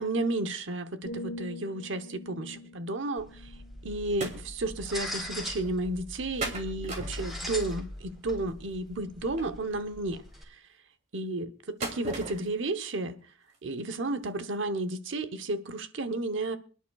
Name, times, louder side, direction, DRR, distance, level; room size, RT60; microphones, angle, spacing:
voice 1, 0.0-3.5 3.8-10.2 10.5-10.6 11.1-13.2 13.6-16.6, right 2 dB, 70° right, 1.0 m, -32 dB
sound 1, 1.0-4.9 5.4-5.7, left 1 dB, 75° left, 1.6 m, -45 dB
sound 2, 3.2-10.4, left 1 dB, ahead, 3.5 m, -41 dB
sound 3, 4.2-4.4 4.9-5.0 5.2-5.3 6.4-7.7 9.4-9.5 11.8-12.5 12.9-13.0 13.5-13.6 14.2-14.3 14.5-14.6, right 2 dB, 40° right, 2.8 m, -36 dB
26.5 x 10.0 x 2.4 m
head